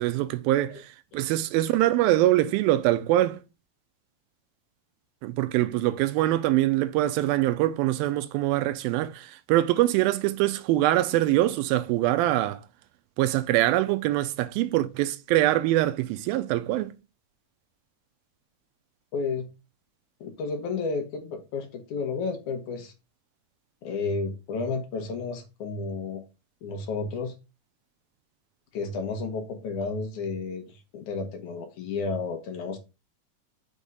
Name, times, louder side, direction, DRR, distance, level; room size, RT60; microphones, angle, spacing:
voice 1, 0.0-3.4 5.2-12.6 13.2-16.9, right 15 dB, 85° right, 2.4 m, -24 dB
voice 2, 19.1-19.5 20.2-22.9 23.8-26.2 26.6-27.3 28.7-32.8, left 4 dB, 65° left, 2.2 m, -32 dB
6.4 x 3.6 x 5.3 m
omnidirectional pair, 4.2 m